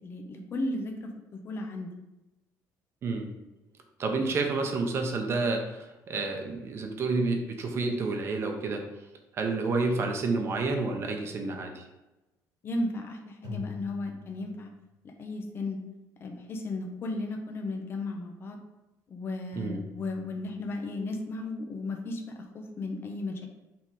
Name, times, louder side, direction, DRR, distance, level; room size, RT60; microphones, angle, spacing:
voice 1, 0.0-1.9 12.6-14.7 15.0-15.8 16.2-18.6 19.1-23.5, left 2 dB, 35° left, 3 dB, 0.9 m, -35 dB
voice 2, 4.0-8.8 9.3-11.9 19.6-19.8, right 3 dB, 40° right, 3 dB, 1.0 m, -29 dB
sound 1, 7.7-8.9 13.4-15.0 19.5-20.7, left 5 dB, 70° right, 1.7 m, -45 dB
6.1 x 3.8 x 4.9 m, 1.0 s
cardioid pair, 155°, 7 cm